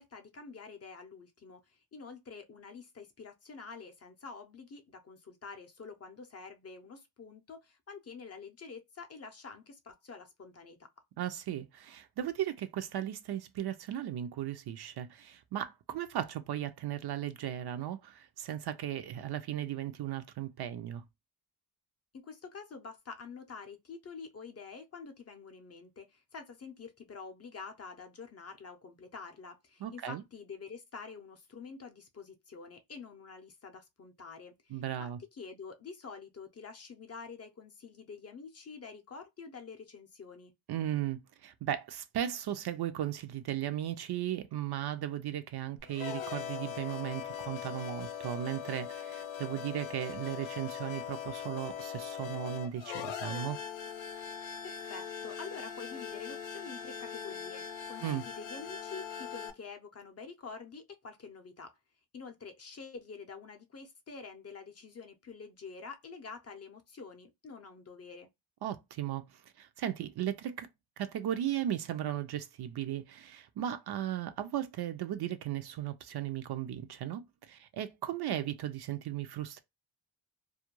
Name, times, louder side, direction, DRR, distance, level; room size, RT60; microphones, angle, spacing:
voice 1, 0.0-10.8 22.1-40.5 54.6-61.7 62.1-68.3, left 5 dB, 35° left, 0.5 m, -47 dB
voice 2, 11.2-21.0 29.8-30.2 34.7-35.2 40.7-53.6 58.0-58.2 68.6-69.2 69.6-70.7 71.0-77.2 77.5-79.6, right 11 dB, 60° right, 0.5 m, -36 dB
sound 1, 45.8-59.5, left 8 dB, 80° left, 0.6 m, -41 dB
2.3 x 2.1 x 2.9 m
cardioid pair, 90°, 46 cm